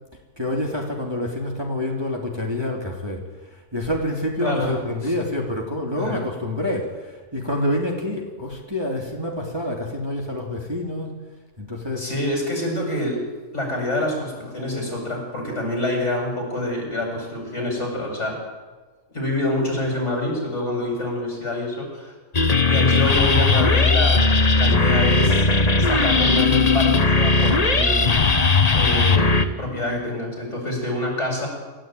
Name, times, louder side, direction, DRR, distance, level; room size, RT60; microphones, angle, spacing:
voice 1, 0.4-3.2 3.5-11.1 11.6-12.1, left 1 dB, 15° right, -1 dB, 3.1 m, -27 dB
voice 2, 4.4-4.7 5.0-5.1 6.0-6.2 12.0-13.2 13.5-18.4 19.1-22.1 22.7-24.2 24.5-25.5 25.8-28.2 28.7-31.5, left 1 dB, 55° left, 0 dB, 8.1 m, -26 dB
sound 1, 22.3-29.5, left 3 dB, 30° left, 1.2 m, -18 dB
26.5 x 14.0 x 9.3 m, 1.3 s
omnidirectional pair, 1.5 m